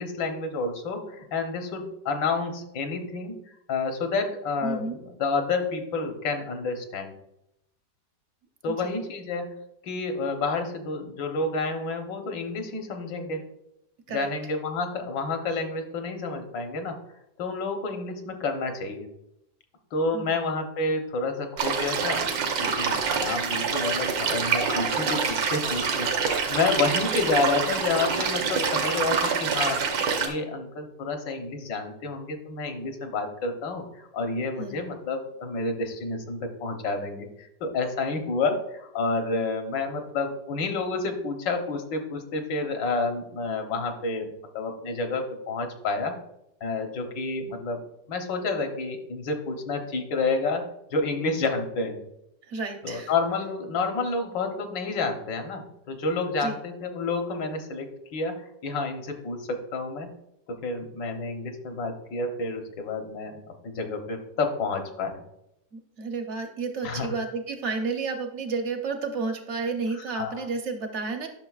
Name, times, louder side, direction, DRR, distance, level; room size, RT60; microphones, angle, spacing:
voice 1, 0.0-3.4 3.7-7.1 8.6-9.5 9.8-13.4 14.1-17.0 17.4-19.1 19.9-44.3 44.5-46.1 46.6-47.8 48.1-52.0 52.8-58.4 58.6-60.1 60.5-63.4 63.6-65.2 66.8-67.1 70.0-70.4, left 3 dB, 75° left, 5 dB, 1.6 m, -29 dB
voice 2, 4.6-5.0 8.7-8.9 14.1-14.3 20.1-20.4 34.6-34.9 52.4-53.1 56.4-56.6 65.7-71.3, right 4 dB, 55° right, 5 dB, 0.8 m, -31 dB
sound 1, 21.6-30.3, right 5 dB, 80° right, 1.7 m, -26 dB
10.5 x 6.4 x 2.4 m, 0.81 s
omnidirectional pair, 2.0 m